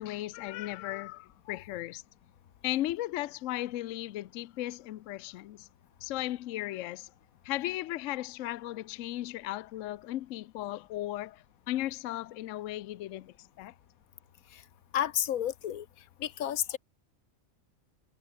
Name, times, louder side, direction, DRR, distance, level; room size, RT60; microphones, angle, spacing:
voice 1, 0.0-2.0 2.6-5.7 6.0-7.1 7.4-13.7, left 15 dB, 70° left, 0.9 m, -36 dB
voice 2, 14.9-15.9 16.2-16.8, left 10 dB, 90° left, 1.3 m, -31 dB
omnidirectional pair, 1.4 m